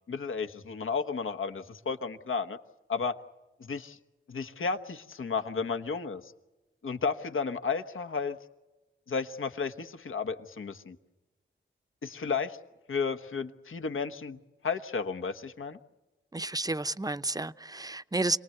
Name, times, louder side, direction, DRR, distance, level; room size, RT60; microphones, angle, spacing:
voice 1, 0.1-2.6 2.9-3.2 3.6-4.0 4.3-6.3 6.8-8.4 9.1-11.0 12.0-12.6 12.9-14.4 14.6-15.8, left 5 dB, 75° left, 1.3 m, -33 dB
voice 2, 16.3-18.4, right 2 dB, 20° right, 0.8 m, -31 dB
27.0 x 19.5 x 8.0 m
cardioid pair, 50°, 21 cm